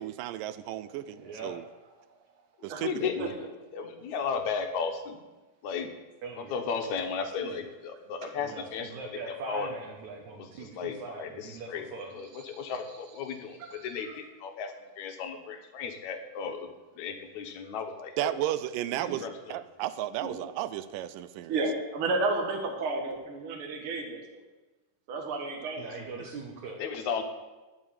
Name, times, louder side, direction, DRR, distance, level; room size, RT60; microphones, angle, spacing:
voice 1, 0.0-1.6 2.6-2.9 18.2-21.5, right 13 dB, 90° right, 13 dB, 2.3 m, -33 dB
voice 2, 1.2-1.5 3.0-3.3 6.2-6.6 7.4-7.6 8.4-12.1 25.8-26.8, right 4 dB, 65° right, -1 dB, 2.6 m, -41 dB
voice 3, 2.7-3.3 3.7-5.2 5.6-5.9 6.4-9.0 9.3-9.7 10.4-11.9 12.1-16.7 17.0-18.3 18.9-19.6 25.8-25.9 26.8-27.2, left 6 dB, 65° left, 6 dB, 2.4 m, -35 dB
voice 4, 21.5-24.2 25.1-25.9, right 3 dB, 45° right, 2 dB, 2.3 m, -32 dB
11.5 x 6.8 x 9.0 m, 1.2 s
omnidirectional pair, 3.8 m